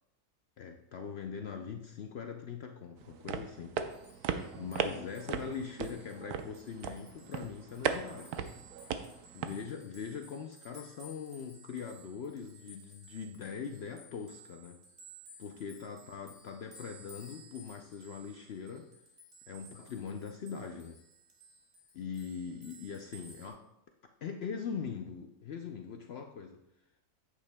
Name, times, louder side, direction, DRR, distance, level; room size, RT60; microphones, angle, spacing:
voice 1, 0.6-3.8 4.6-8.5 9.3-14.8 15.4-18.9 19.5-21.0 21.9-23.7 24.2-26.6, left 6 dB, 70° left, 4 dB, 0.6 m, -42 dB
sound 1, 3.0-9.5, right 8 dB, 80° right, 1.1 m, -37 dB
sound 2, 3.9-23.5, right 1 dB, 30° right, 1.5 m, -57 dB
9.9 x 8.5 x 2.2 m, 0.81 s
omnidirectional pair, 1.6 m